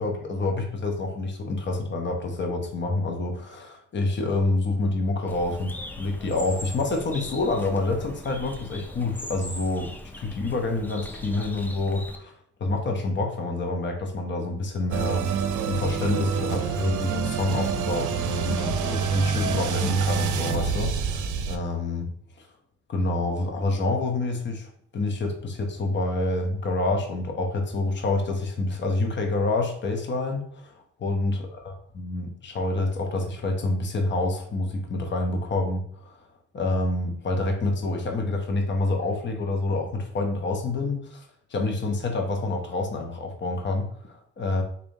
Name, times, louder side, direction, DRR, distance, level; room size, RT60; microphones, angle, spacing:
voice 1, 0.0-12.3 12.6-22.1 22.4-22.5 22.9-36.3 36.5-41.2 41.5-44.6, left 2 dB, 40° left, 3 dB, 0.8 m, -27 dB
Bird, 5.3-12.2, left 1 dB, 5° left, 0.5 m, -40 dB
sound 1, 14.9-21.6, right 7 dB, 75° right, 0.6 m, -27 dB
4.1 x 3.3 x 2.7 m, 0.65 s
cardioid pair, 90°, 30 cm